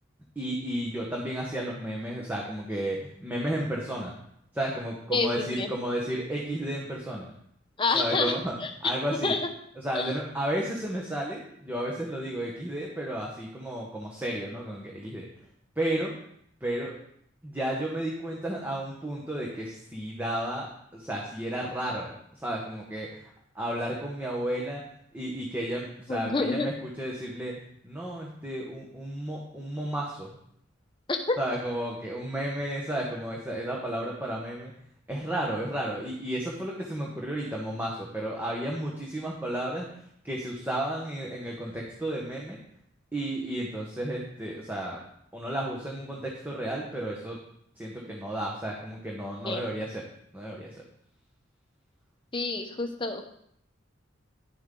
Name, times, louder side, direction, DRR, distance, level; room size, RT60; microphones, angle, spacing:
voice 1, 0.3-4.1 4.5-7.3 7.9-8.5 8.8-9.3 9.8-15.3 15.8-16.1 16.6-17.0 17.4-24.8 25.1-27.5 27.8-30.4 31.4-34.7 35.1-39.9 40.2-42.6 43.1-45.0 45.3-47.4 47.8-50.0 50.3-50.7, right 1 dB, 10° right, -3 dB, 1.1 m, -32 dB
voice 2, 5.1-5.7 7.8-8.9 9.2-9.5 9.9-10.1 26.1-26.7 31.1-31.4 49.4-49.6 52.3-53.2, left 3 dB, 25° left, 5 dB, 0.9 m, -28 dB
10.5 x 7.3 x 3.8 m, 0.72 s
head